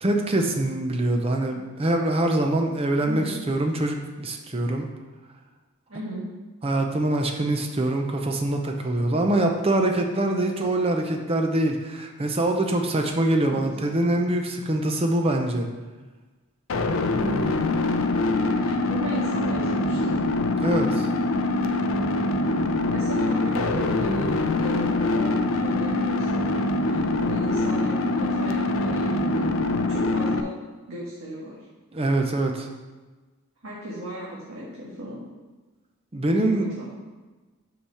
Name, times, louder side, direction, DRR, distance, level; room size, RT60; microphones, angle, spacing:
voice 1, 0.0-4.9 6.6-15.7 20.6-21.1 31.9-32.7 36.1-36.7, right 1 dB, 30° right, 3 dB, 0.6 m, -24 dB
voice 2, 3.0-3.4 5.9-6.3 13.5-13.6 17.2-17.5 18.5-20.2 22.9-24.3 24.6-29.5 29.9-30.5 30.9-31.7 33.6-35.2 36.4-36.5 36.8-36.9, right 1 dB, 70° right, -7 dB, 1.5 m, -35 dB
sound 1, 16.7-30.4, left 2 dB, 65° left, 0.5 m, -24 dB
5.8 x 4.9 x 5.7 m, 1.3 s
head